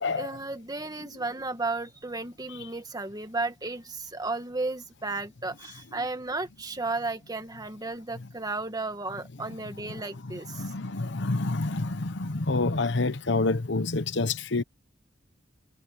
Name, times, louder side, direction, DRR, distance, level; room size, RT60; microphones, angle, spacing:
voice 1, 0.2-10.6, right 3 dB, 20° right, 1.7 m, -34 dB
voice 2, 10.2-14.6, left 3 dB, 65° left, 1.0 m, -28 dB
head